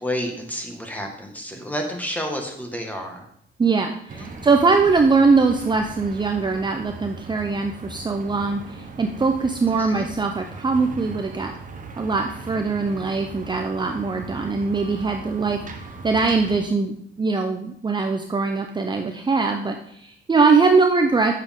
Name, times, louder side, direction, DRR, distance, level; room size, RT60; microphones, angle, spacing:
voice 1, 0.0-3.2 4.1-4.4 9.8-10.1, equal, 10° left, 2 dB, 1.8 m, -30 dB
voice 2, 3.6-11.5 12.0-15.6 16.0-21.3, right 4 dB, 25° right, 4 dB, 0.7 m, -21 dB
sound 1, 4.1-16.6, right 4 dB, 40° right, 1.1 m, -39 dB
7.5 x 6.6 x 3.7 m, 0.69 s
cardioid pair, 90°, 20 cm